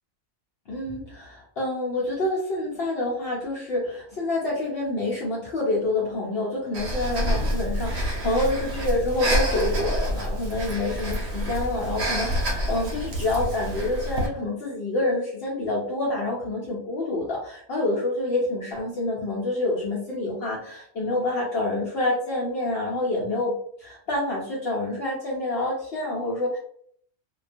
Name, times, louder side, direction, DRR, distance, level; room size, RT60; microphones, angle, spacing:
voice 1, 0.7-26.6, left 2 dB, 60° left, -5 dB, 0.8 m, -27 dB
Breathing, 6.7-14.3, equal, 65° right, 0.8 m, -27 dB
2.3 x 2.2 x 2.4 m, 0.62 s
omnidirectional pair, 1.3 m